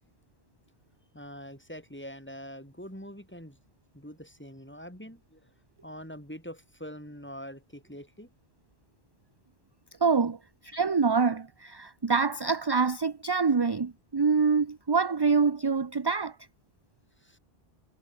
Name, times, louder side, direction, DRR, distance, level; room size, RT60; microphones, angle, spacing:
voice 1, 1.1-3.6 3.9-5.5 5.8-8.3 17.2-17.4, equal, 10° left, 6.2 m, -44 dB
voice 2, 10.0-10.4 10.6-16.4, right 5 dB, 25° right, 0.6 m, -25 dB
omnidirectional pair, 1.1 m